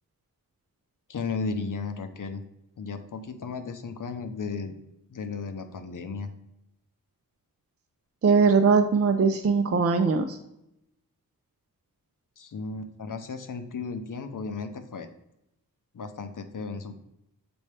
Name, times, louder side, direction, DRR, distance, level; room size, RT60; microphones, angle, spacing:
voice 1, 1.1-2.4 2.8-4.7 5.1-6.3 12.4-15.1 15.9-16.9, left 4 dB, 60° left, 8 dB, 0.7 m, -34 dB
voice 2, 8.2-10.4, right 5 dB, 45° right, 6 dB, 0.5 m, -21 dB
7.0 x 4.2 x 3.3 m, 0.82 s
wide cardioid pair, 100°, 36 cm